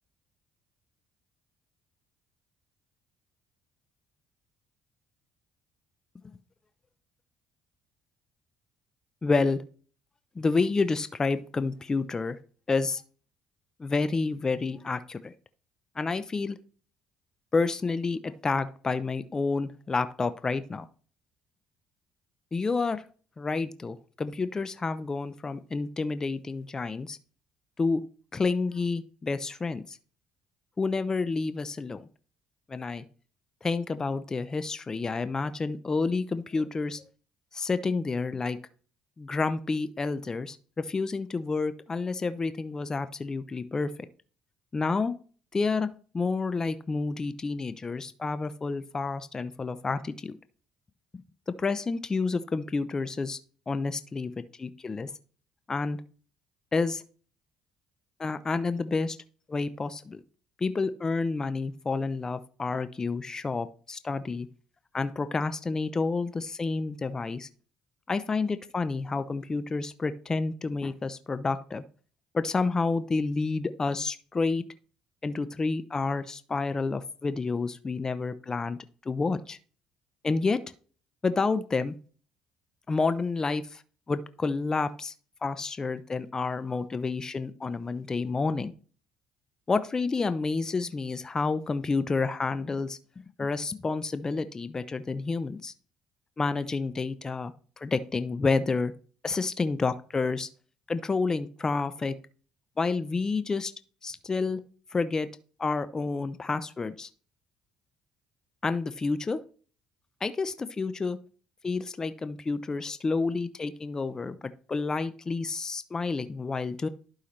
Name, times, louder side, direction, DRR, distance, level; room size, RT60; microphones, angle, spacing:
voice 1, 9.2-9.6 10.4-12.4 12.7-13.0 13.8-15.3 16.0-16.6 17.5-20.8 22.5-23.0 23.4-27.2 27.8-28.0 28.3-30.0 30.8-32.1 32.7-33.0 33.6-37.0 37.5-38.6 39.2-43.9 44.7-45.1 45.5-45.9 46.1-50.3 51.6-53.4 53.7-55.1 55.7-56.0 56.7-57.0 58.2-59.2 59.5-60.2 60.6-64.5 64.9-67.5 68.1-71.8 72.3-74.6 75.2-78.8 79.1-79.6 80.2-80.6 81.2-81.9 82.9-83.8 84.1-85.1 85.4-88.7 89.7-93.0 93.4-95.7 96.4-98.9 99.2-100.5 100.9-102.1 102.8-103.7 104.0-104.6 104.9-105.3 105.6-107.1 108.6-109.4 110.2-111.2 111.6-114.4 114.7-116.9, left 4 dB, 30° left, 12 dB, 0.6 m, -29 dB
11.5 x 5.6 x 3.2 m, 0.41 s
supercardioid pair, 70°, 2 cm